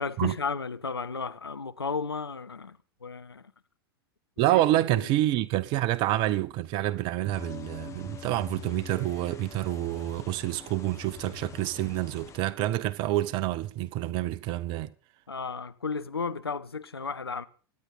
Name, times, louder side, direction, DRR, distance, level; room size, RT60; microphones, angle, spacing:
voice 1, 0.0-3.4 4.5-4.6 5.0-5.1 15.3-17.5, left 5 dB, 80° left, 0.8 m, -34 dB
voice 2, 4.4-14.9, right 15 dB, 40° right, 0.8 m, -28 dB
sound 1, 7.3-12.4, left 8 dB, 25° left, 1.5 m, -44 dB
24.0 x 9.6 x 4.1 m
figure-of-eight pair, 90°, 13 cm